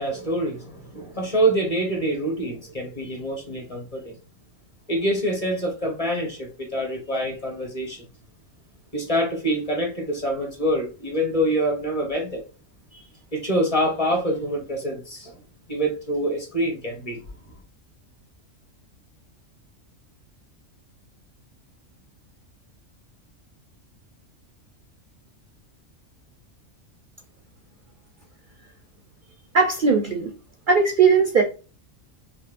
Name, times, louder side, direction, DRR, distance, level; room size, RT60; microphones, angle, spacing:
voice 1, 0.0-4.1 4.9-8.0 8.9-12.4 12.9-13.0 13.3-15.4 15.7-17.2, right 1 dB, 30° left, 1.0 m, -25 dB
voice 2, 29.5-30.3 30.7-31.4, right 5 dB, 55° right, 0.6 m, -18 dB
5.3 x 2.0 x 2.5 m
omnidirectional pair, 1.3 m